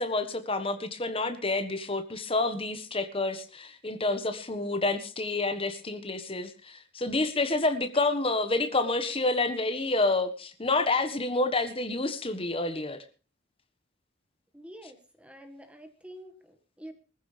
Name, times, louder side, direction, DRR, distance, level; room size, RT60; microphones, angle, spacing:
voice 1, 0.0-13.0, left 2 dB, 25° left, 9 dB, 1.4 m, -28 dB
voice 2, 14.5-16.9, equal, 5° right, 6 dB, 1.7 m, -47 dB
20.5 x 14.5 x 3.4 m, 0.35 s
head